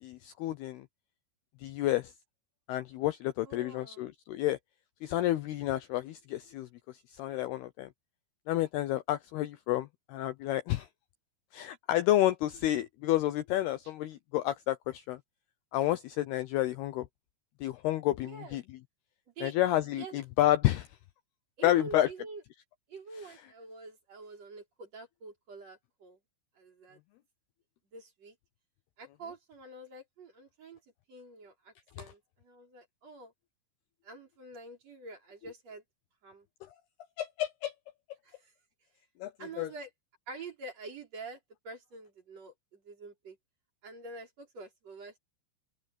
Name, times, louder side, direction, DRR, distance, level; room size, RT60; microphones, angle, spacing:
voice 1, 0.0-0.9 1.6-2.1 2.7-4.6 5.0-6.7 7.1-7.9 8.5-10.9 11.5-15.2 15.7-17.1 17.6-18.6 19.4-20.9 21.6-22.1 37.2-37.7 39.2-39.3 39.6-39.7, left 14 dB, 85° left, 2.2 m, -30 dB
voice 2, 3.5-4.1 18.3-18.6 19.4-19.6 20.0-20.2 21.6-22.4 22.9-26.2 26.6-27.0 27.9-28.4 29.0-30.8 31.1-33.3 34.0-35.8 36.2-36.5 38.2-38.5 39.4-39.9 40.3-41.4 41.6-43.4 43.8-45.2, right 3 dB, 35° right, 5.8 m, -47 dB
open air
omnidirectional pair, 5.6 m